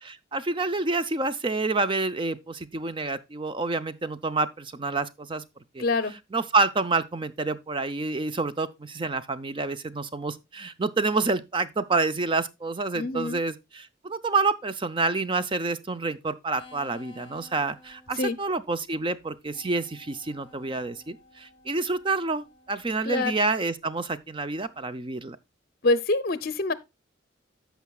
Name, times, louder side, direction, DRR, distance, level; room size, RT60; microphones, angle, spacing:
voice 1, 0.1-5.4 5.7-5.8 6.3-25.4, right 3 dB, 25° right, 0.5 m, -28 dB
voice 2, 5.8-6.1 12.9-13.4 18.2-18.4 23.0-23.3 25.8-26.7, left 2 dB, 50° left, 0.7 m, -25 dB
sound 1, 16.6-18.4 19.2-23.3 24.5-24.8, left 2 dB, 25° left, 1.5 m, -53 dB
14.0 x 5.7 x 2.3 m
head